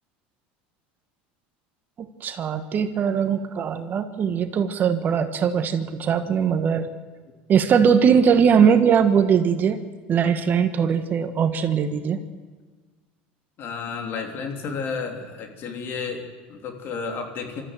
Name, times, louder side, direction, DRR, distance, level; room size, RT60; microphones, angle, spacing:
voice 1, 2.2-6.9 7.5-9.8 10.1-12.2, right 7 dB, 40° right, 9 dB, 1.3 m, -20 dB
voice 2, 13.6-17.6, left 5 dB, 50° left, 3 dB, 3.5 m, -32 dB
25.0 x 13.5 x 7.6 m, 1.4 s
supercardioid pair, 105°, 5 cm